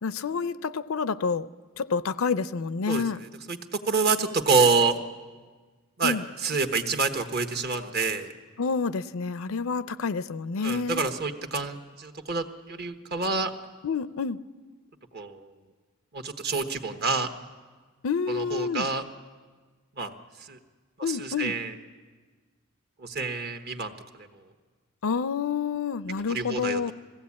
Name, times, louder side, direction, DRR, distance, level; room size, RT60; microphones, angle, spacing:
voice 1, 0.0-1.5 1.8-3.2 6.0-6.2 8.6-11.0 13.8-14.4 18.0-18.9 21.0-21.5 25.0-26.9, left 5 dB, 80° left, 15 dB, 0.5 m, -28 dB
voice 2, 2.9-3.6 3.8-5.0 6.0-8.3 10.6-13.5 15.1-15.5 16.1-17.3 18.3-19.0 20.0-20.1 20.4-20.6 21.1-21.7 23.0-23.9 26.3-26.9, right 4 dB, 50° right, 6 dB, 1.3 m, -27 dB
21.0 x 16.0 x 8.5 m, 1.4 s
head